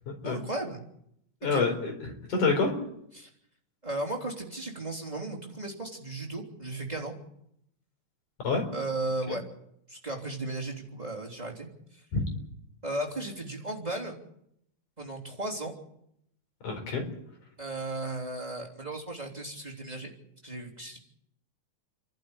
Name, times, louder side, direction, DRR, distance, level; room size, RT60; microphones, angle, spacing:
voice 1, 0.2-0.8 1.5-1.6 3.1-3.3 3.8-7.1 8.7-9.4 9.9-12.0 12.8-14.2 15.0-15.7 17.6-20.1 20.4-21.0, right 2 dB, 15° right, 0 dB, 3.1 m, -35 dB
voice 2, 1.4-2.8 8.4-8.6 12.1-12.2 16.6-17.1, left 4 dB, 80° left, 3 dB, 5.9 m, -27 dB
29.5 x 12.0 x 9.9 m, 0.75 s
omnidirectional pair, 3.6 m